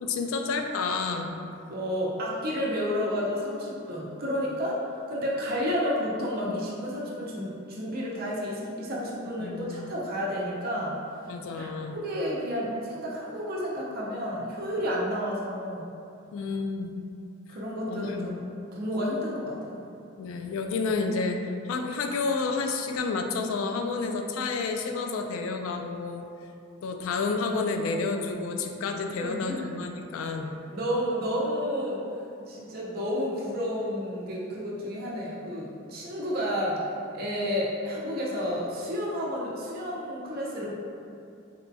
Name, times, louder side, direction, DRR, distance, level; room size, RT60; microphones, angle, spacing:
voice 1, 0.0-1.4 9.4-9.9 11.3-12.0 16.3-16.9 17.9-18.4 20.2-26.2 26.8-30.5, left 4 dB, 75° left, 5 dB, 0.3 m, -30 dB
voice 2, 1.7-4.8 5.1-11.0 11.5-15.9 17.5-19.8 29.1-29.7 30.7-32.0 32.5-40.7, equal, 50° right, -4 dB, 0.6 m, -31 dB
4.2 x 2.2 x 2.6 m, 2.5 s
head